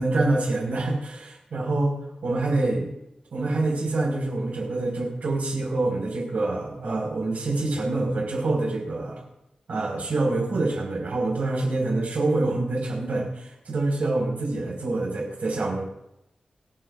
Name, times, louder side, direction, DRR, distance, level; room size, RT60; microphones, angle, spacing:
voice 1, 0.0-2.0 2.2-2.9 3.3-9.2 9.7-15.8, right 2 dB, 90° right, -2 dB, 5.5 m, -26 dB
28.0 x 9.8 x 2.7 m, 0.85 s
wide cardioid pair, 140°, 2 cm